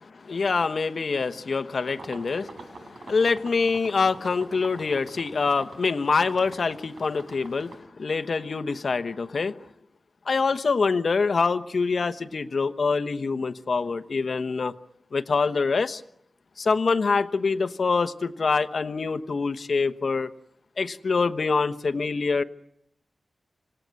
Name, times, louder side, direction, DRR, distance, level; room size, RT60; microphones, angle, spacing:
voice 1, 0.0-9.6 10.3-14.7 15.1-16.0 16.6-20.3 20.8-22.4, left 4 dB, 60° left, 11 dB, 1.1 m, -25 dB
sound 1, 1.8-7.8, right 3 dB, 80° right, 4.4 m, -45 dB
26.5 x 18.0 x 9.5 m, 0.77 s
wide cardioid pair, 120°, 0 cm